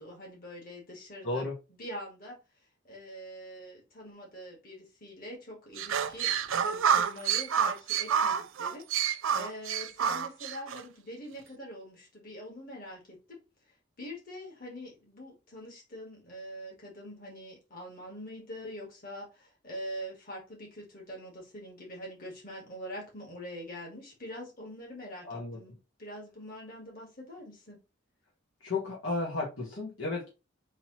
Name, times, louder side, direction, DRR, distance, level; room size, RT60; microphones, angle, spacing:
voice 1, 0.0-2.4 2.8-13.4 14.0-27.8, equal, 45° left, -1 dB, 2.2 m, -44 dB
voice 2, 1.2-1.5 25.2-25.6 28.6-30.3, left 3 dB, 70° left, -3 dB, 1.4 m, -33 dB
sound 1, 5.8-10.8, right 7 dB, 75° right, 0.5 m, -28 dB
3.9 x 3.0 x 4.2 m, 0.28 s
head